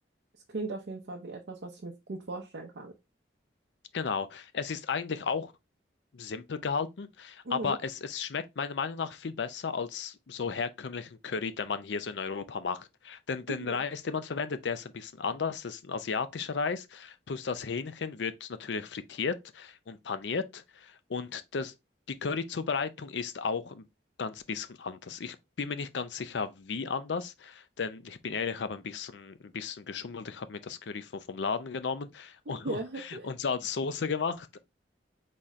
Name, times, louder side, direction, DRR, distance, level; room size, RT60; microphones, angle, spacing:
voice 1, 0.5-2.9 7.4-7.8 13.5-13.8 32.5-33.3, right 2 dB, 75° right, 0.6 m, -38 dB
voice 2, 3.9-5.5 6.1-21.7 22.1-23.8 24.2-34.6, left 5 dB, 80° left, 0.5 m, -34 dB
4.2 x 3.7 x 3.1 m
head